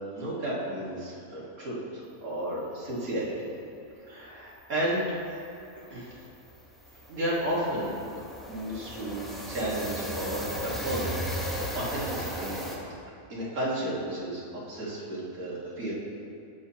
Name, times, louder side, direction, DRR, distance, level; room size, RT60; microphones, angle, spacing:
voice 1, 0.2-1.8 2.2-3.3 4.0-5.1 5.9-6.2 7.1-12.6 13.3-15.9, right 1 dB, 80° right, -7 dB, 2.2 m, -33 dB
sound 1, 4.4-4.5 4.7-4.9 5.2-12.8, equal, ahead, 0.8 m, -36 dB
11.0 x 7.8 x 2.9 m, 2.6 s
omnidirectional pair, 1.5 m